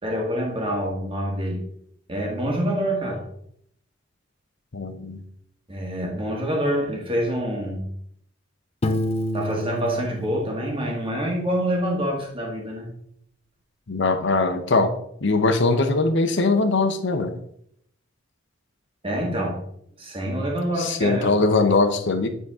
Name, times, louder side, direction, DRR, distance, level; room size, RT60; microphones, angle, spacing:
voice 1, 0.0-1.6 2.1-3.2 5.7-7.9 9.3-12.9 19.0-19.6 20.0-21.4, equal, 25° right, -1 dB, 1.7 m, -26 dB
voice 2, 4.7-5.2 13.9-14.9 15.2-17.3 20.8-22.3, left 3 dB, 65° left, 8 dB, 0.9 m, -21 dB
Piano, 8.8-11.6, left 1 dB, 30° left, 0.5 m, -29 dB
9.4 x 4.0 x 3.7 m, 0.69 s
head